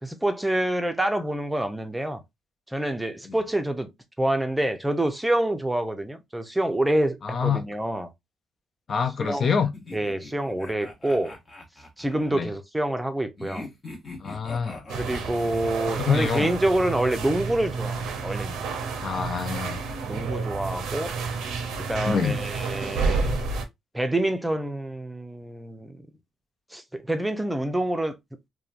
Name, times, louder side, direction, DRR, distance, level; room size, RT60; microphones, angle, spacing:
voice 1, 0.0-2.2 2.7-3.9 4.2-8.1 9.2-9.5 9.9-11.4 12.0-13.7 15.0-18.6 20.0-21.2 21.8-23.3 23.9-26.0 26.7-28.2, right 1 dB, 10° right, 0.5 m, -27 dB
voice 2, 7.2-7.6 8.9-9.7 12.3-12.5 14.2-14.8 16.0-16.5 19.0-19.8 22.0-22.4, left 6 dB, 50° left, 0.4 m, -26 dB
sound 1, 9.7-12.4 13.4-16.0, left 2 dB, 35° left, 0.9 m, -42 dB
sound 2, 14.9-23.6, right 4 dB, 85° right, 0.5 m, -30 dB
2.9 x 2.2 x 2.4 m
cardioid pair, 90°, 0 cm